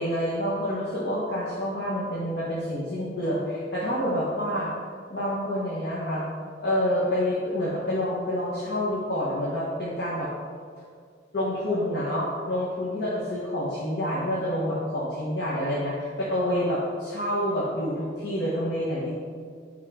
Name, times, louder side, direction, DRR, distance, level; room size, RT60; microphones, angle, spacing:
voice 1, 0.0-4.7 5.1-6.2 6.6-10.3 11.3-19.1, equal, 60° left, -8 dB, 1.1 m, -28 dB
8.6 x 3.7 x 3.6 m, 2.1 s
head